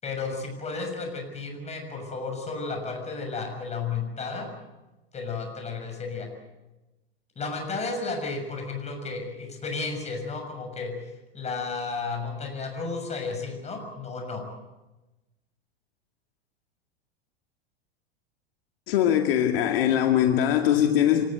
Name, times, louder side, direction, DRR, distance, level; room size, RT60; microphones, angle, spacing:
voice 1, 0.0-4.5 5.1-6.3 7.3-10.9 11.3-14.4, left 4 dB, 20° left, 6.7 m, -33 dB
voice 2, 18.9-21.3, left 10 dB, 65° left, 2.3 m, -21 dB
25.5 x 19.0 x 7.9 m
hypercardioid pair, 115°, 31 cm